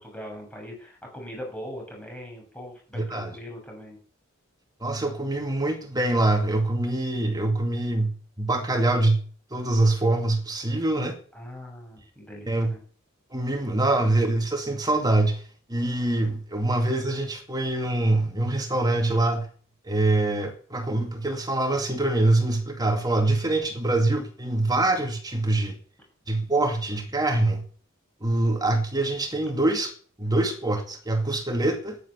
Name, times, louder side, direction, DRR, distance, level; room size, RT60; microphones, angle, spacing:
voice 1, 0.0-4.0 11.3-12.8, equal, 5° left, 7.2 m, -40 dB
voice 2, 3.0-3.3 4.8-9.2 9.5-11.1 12.5-12.7 13.3-15.4 15.7-19.5 19.8-25.8 26.3-27.6 28.2-29.9 30.2-32.0, right 2 dB, 20° right, 2.2 m, -24 dB
13.5 x 10.5 x 7.2 m
head